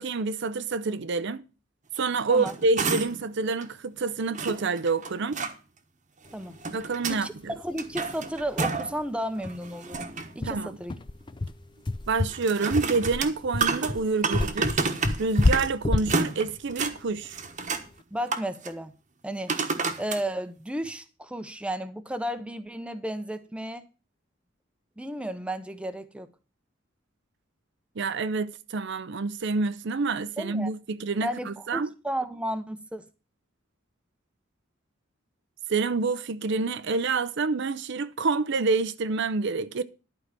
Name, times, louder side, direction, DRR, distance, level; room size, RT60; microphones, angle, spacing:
voice 1, 0.0-1.4 2.0-5.4 6.7-7.5 10.4-10.8 12.1-14.9 15.2-17.4 28.0-31.9 35.7-39.8, right 4 dB, 60° right, 0.6 m, -27 dB
sound 1, 2.2-3.3 3.6-3.7 4.3-5.5 6.3-7.2 7.6-9.0 9.4-10.4 12.3-15.7 16.0-17.0 17.3-17.9 18.3-18.7 19.5-20.2 20.8-20.9, right 4 dB, 40° right, 1.2 m, -30 dB
voice 2, 7.1-11.0 18.1-18.9 19.2-19.6 20.0-23.9 25.0-26.3 30.4-30.7 31.2-33.0, right 1 dB, 5° right, 0.8 m, -33 dB
sound 2, 7.5-7.6 7.9-8.0 8.4-8.5 8.9-9.0 9.4-17.9, left 2 dB, 25° left, 0.5 m, -29 dB
11.5 x 4.8 x 7.4 m
head